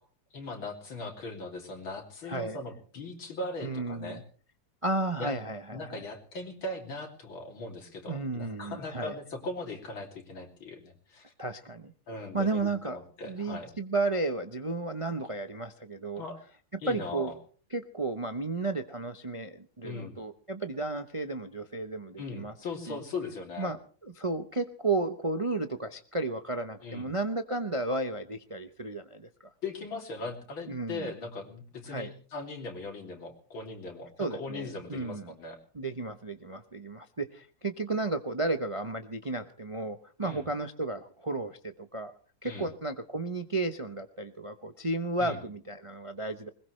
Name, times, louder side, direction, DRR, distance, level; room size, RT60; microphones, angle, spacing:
voice 1, 0.3-4.2 5.2-5.3 5.7-11.3 12.1-13.7 16.2-16.4 16.8-17.3 19.8-20.2 22.2-23.7 26.8-27.1 29.6-35.6 40.2-40.5 42.4-42.7 45.2-45.4, left 3 dB, 85° left, 3 dB, 3.8 m, -39 dB
voice 2, 2.2-2.6 3.6-4.2 4.8-6.0 8.1-9.1 11.4-11.9 12.3-13.0 13.2-16.2 16.9-17.3 17.7-22.5 22.9-23.0 23.6-29.5 30.7-31.1 31.9-32.1 34.2-35.3 35.7-42.1 42.4-46.5, right 2 dB, 35° right, 8 dB, 0.5 m, -33 dB
21.0 x 20.5 x 3.2 m, 0.41 s
omnidirectional pair, 2.1 m